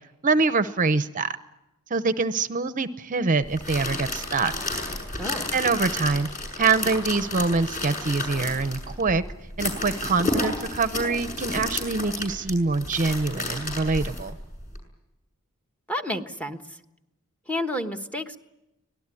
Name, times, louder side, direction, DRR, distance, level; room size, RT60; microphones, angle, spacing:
voice 1, 0.2-1.4 1.9-4.5 5.5-6.3 6.6-9.2 9.6-14.4, right 4 dB, 35° right, 11 dB, 0.8 m, -24 dB
sound 1, 3.4-14.8, left 2 dB, 35° left, 6.6 m, -32 dB
voice 2, 5.2-5.5 15.9-16.6 17.5-18.4, left 1 dB, 5° left, 6 dB, 1.3 m, -30 dB
25.0 x 18.5 x 9.9 m, 0.95 s
head